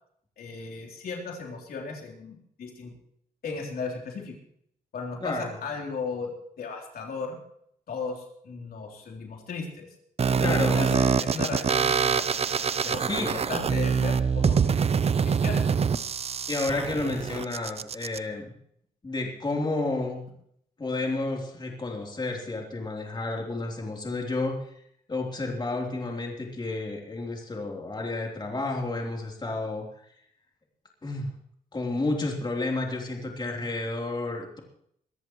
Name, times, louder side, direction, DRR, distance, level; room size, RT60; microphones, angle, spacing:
voice 1, 0.4-2.9 3.4-4.4 4.9-6.3 6.6-7.4 7.9-9.9 10.4-12.3 12.8-14.8 15.2-15.9, left 4 dB, 70° left, 1 dB, 3.5 m, -36 dB
sound 1, 10.2-18.2, right 6 dB, 40° right, 0.6 m, -25 dB
voice 2, 10.4-10.9 13.1-13.3 16.5-18.5 19.0-20.2 20.8-24.6 25.1-29.9 31.0-31.3 31.7-34.6, left 2 dB, 30° left, 0 dB, 3.4 m, -31 dB
23.0 x 14.0 x 3.1 m, 0.67 s
cardioid pair, 100°, 16 cm